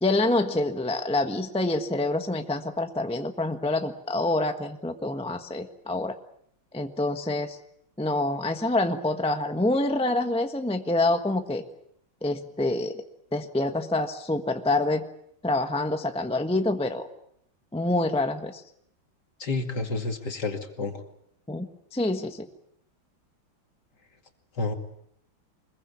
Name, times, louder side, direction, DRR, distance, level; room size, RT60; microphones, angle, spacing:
voice 1, 0.0-6.2 6.7-7.6 8.0-11.6 12.2-13.0 13.3-15.0 15.4-17.1 17.7-18.6 21.5-22.5, left 2 dB, 5° left, 6 dB, 1.0 m, -26 dB
voice 2, 19.4-21.0 24.5-24.7, left 3 dB, 55° left, 5 dB, 2.9 m, -30 dB
25.0 x 22.0 x 8.4 m, 0.72 s
omnidirectional pair, 2.3 m